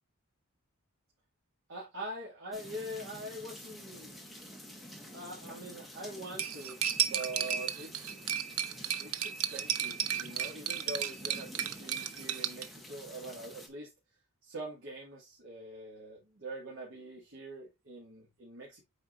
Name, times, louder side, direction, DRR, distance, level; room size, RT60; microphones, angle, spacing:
voice 1, 1.7-4.6 5.1-8.3 9.0-13.9 14.4-18.8, right 1 dB, 60° right, 2.4 m, -44 dB
sound 1, 2.5-13.7, equal, ahead, 1.4 m, -49 dB
Cutlery silverware, 6.4-12.7, right 10 dB, 85° right, 0.6 m, -33 dB
8.6 x 4.4 x 2.7 m
head